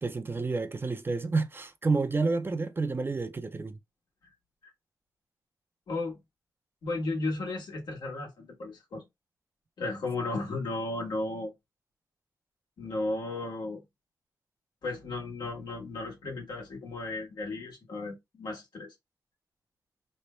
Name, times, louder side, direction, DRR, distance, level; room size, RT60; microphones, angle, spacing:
voice 1, 0.0-3.8, right 3 dB, 30° right, 0.5 m, -29 dB
voice 2, 5.9-6.2 6.8-9.0 9.8-11.5 12.8-13.8 14.8-18.9, left 2 dB, 90° left, 1.4 m, -34 dB
3.2 x 2.2 x 4.2 m
cardioid pair, 85°, 7 cm